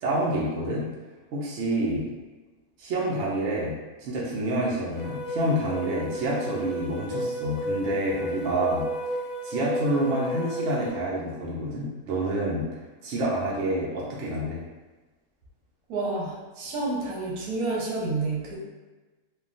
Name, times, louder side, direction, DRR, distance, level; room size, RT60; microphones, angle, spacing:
voice 1, 0.0-0.9 1.3-2.1 2.8-3.7 4.0-8.8 9.4-12.7 13.0-14.6, right 1 dB, 60° right, -5 dB, 0.8 m, -28 dB
sound 1, 4.9-10.9, equal, 70° left, 0.9 m, -33 dB
voice 2, 15.9-18.6, right 3 dB, 80° right, -3 dB, 1.2 m, -29 dB
3.3 x 2.3 x 2.4 m, 1.2 s
omnidirectional pair, 1.6 m